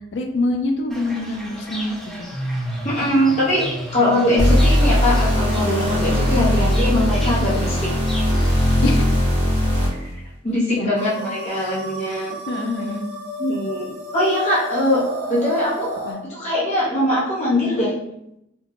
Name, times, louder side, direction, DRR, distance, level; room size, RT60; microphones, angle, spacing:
voice 1, 0.1-2.3 4.0-4.3 7.2-7.4 8.8-9.1 10.7-10.9 11.5-11.7 12.1-13.0 16.1-16.2, left 2 dB, 60° left, 4 dB, 0.4 m, -26 dB
Fowl / Bird, 0.9-8.8, equal, ahead, 0.5 m, -34 dB
voice 2, 2.8-7.9 10.4-12.4 13.4-15.9 16.3-17.9, left 1 dB, 35° left, -8 dB, 0.7 m, -21 dB
sound 1, 4.4-10.1, equal, 35° right, 0.9 m, -19 dB
sound 2, 10.9-16.1, equal, 60° right, 1.1 m, -32 dB
2.6 x 2.1 x 2.8 m, 0.81 s
head